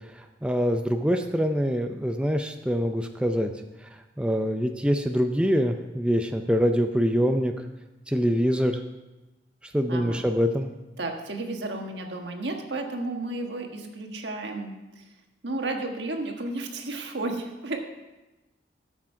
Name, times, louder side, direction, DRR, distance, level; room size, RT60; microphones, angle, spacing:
voice 1, 0.4-3.5 4.2-7.5 8.1-8.8 9.7-10.7, equal, 5° right, 5 dB, 0.5 m, -24 dB
voice 2, 9.9-10.2 11.0-15.0 15.4-17.8, right 2 dB, 80° right, 3 dB, 1.4 m, -33 dB
13.0 x 6.2 x 5.7 m, 1.1 s
head